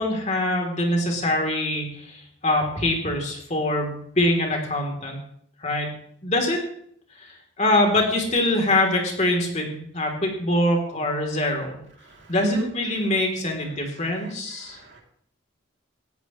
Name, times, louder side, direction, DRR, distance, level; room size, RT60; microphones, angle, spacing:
voice 1, 0.0-5.2 5.6-5.9 6.2-6.6 7.2-11.8 12.3-14.8, left 1 dB, 35° left, 1 dB, 3.4 m, -24 dB
voice 2, 12.0-12.7 14.6-15.0, right 1 dB, 60° right, 1 dB, 3.0 m, -31 dB
19.0 x 14.0 x 3.2 m, 0.66 s
head